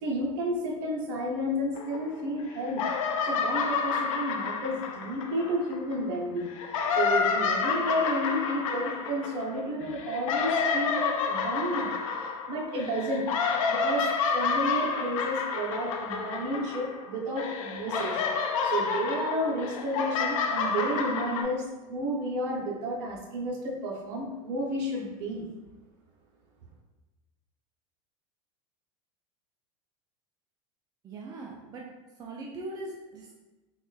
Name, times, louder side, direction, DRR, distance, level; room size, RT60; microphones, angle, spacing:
voice 1, 0.0-2.8 3.2-13.3 13.7-18.3 18.6-25.5, equal, 60° right, -2 dB, 0.8 m, -32 dB
sound 1, 1.8-2.4 2.7-6.0 6.5-17.1 17.4-21.4, left 5 dB, 80° left, 0.4 m, -29 dB
voice 2, 31.0-31.9 32.2-33.4, right 2 dB, 25° right, -1 dB, 0.4 m, -40 dB
3.9 x 2.3 x 2.3 m, 1.1 s
hypercardioid pair, 110°, 17 cm